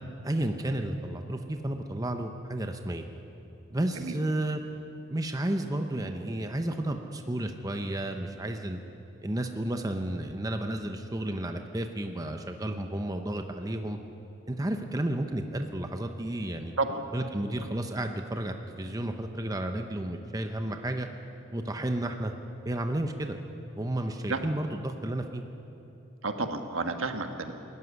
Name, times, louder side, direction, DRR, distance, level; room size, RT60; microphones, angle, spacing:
voice 1, 0.2-3.1 3.7-4.6 5.1-8.8 9.2-14.0 14.5-16.7 17.1-21.1 21.5-22.3 22.6-23.4 23.7-25.4, right 1 dB, 15° right, 5 dB, 0.8 m, -32 dB
voice 2, 26.2-27.5, right 3 dB, 70° right, 6 dB, 1.4 m, -31 dB
20.0 x 14.0 x 9.7 m, 2.9 s
head